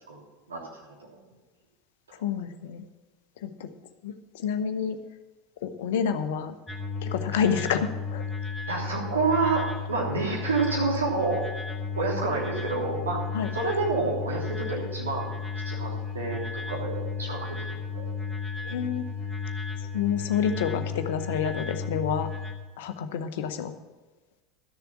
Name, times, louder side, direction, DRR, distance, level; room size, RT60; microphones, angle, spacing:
voice 1, 0.5-1.2 8.7-11.4 12.0-13.2 13.5-15.3 15.6-18.1, right 3 dB, 75° right, -3 dB, 3.0 m, -29 dB
voice 2, 2.2-2.8 3.4-3.7 4.0-5.0 5.6-6.5 7.0-8.2 13.3-13.5 18.6-19.1 19.9-22.3 22.8-23.7, left 7 dB, 60° left, 9 dB, 0.9 m, -28 dB
sound 1, 6.7-22.5, left 5 dB, 30° left, 1.3 m, -34 dB
12.5 x 6.9 x 7.2 m, 1.3 s
figure-of-eight pair, 75°, 0 cm